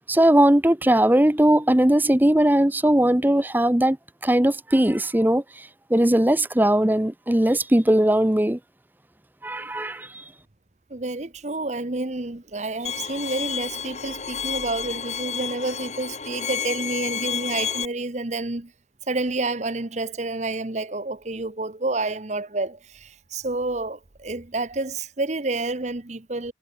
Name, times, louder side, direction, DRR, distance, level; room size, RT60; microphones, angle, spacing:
voice 1, 0.1-4.0 4.2-8.6 9.4-10.3, right 1 dB, 10° right, 0.7 m, -19 dB
voice 2, 10.9-18.7 19.1-26.5, right 2 dB, 40° right, 1.1 m, -29 dB
Bowed string instrument, 12.8-17.8, left 7 dB, 40° left, 2.5 m, -30 dB
head